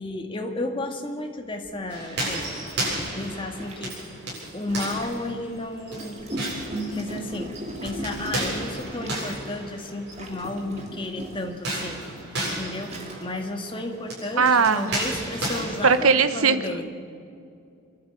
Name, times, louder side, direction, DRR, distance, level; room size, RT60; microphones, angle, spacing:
voice 1, 0.0-2.5 3.0-4.0 4.5-6.2 6.9-7.6 7.8-12.0 12.4-16.9, left 2 dB, 25° left, 4 dB, 1.7 m, -33 dB
Gurgling, 1.6-1.8 2.5-5.3 5.9-9.5 10.1-11.6 12.3-12.4 12.8-13.4, right 1 dB, 30° right, 2.6 m, -37 dB
sound 1, 1.9-10.5 11.5-16.1, right 1 dB, 50° right, 7.6 m, -33 dB
voice 2, 14.4-15.0 15.8-16.6, right 5 dB, 80° right, 11 dB, 1.1 m, -19 dB
25.5 x 12.0 x 9.2 m, 2.4 s
head